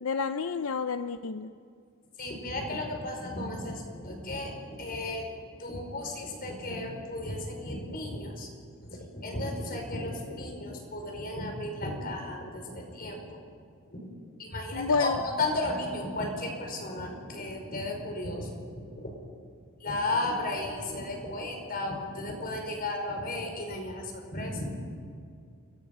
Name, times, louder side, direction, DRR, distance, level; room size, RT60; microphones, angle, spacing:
voice 1, 0.0-1.5 14.7-15.2, left 5 dB, 70° left, 10 dB, 0.6 m, -29 dB
voice 2, 2.2-5.3 5.6-8.5 8.9-13.4 13.9-14.1 14.4-18.5 18.8-19.1 19.8-24.8, left 2 dB, 45° left, 3 dB, 5.4 m, -34 dB
29.5 x 23.0 x 5.6 m, 2.3 s
head